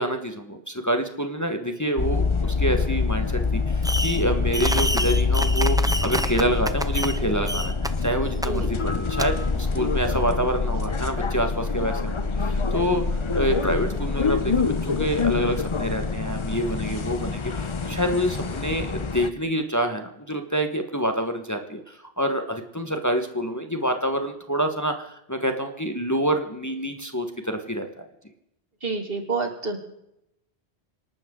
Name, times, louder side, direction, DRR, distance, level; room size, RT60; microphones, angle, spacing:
voice 1, 0.0-13.0 13.3-28.1, equal, 15° left, 5 dB, 1.4 m, -27 dB
sound 1, 2.0-19.3, left 4 dB, 30° left, 0.7 m, -25 dB
Fireworks, 3.8-4.3 4.5-7.2 7.5-7.9 8.4-8.5 9.2-9.3, right 1 dB, 5° right, 0.5 m, -28 dB
voice 2, 28.8-29.8, right 4 dB, 60° right, 4 dB, 2.6 m, -28 dB
27.5 x 12.0 x 3.8 m, 0.82 s
omnidirectional pair, 1.1 m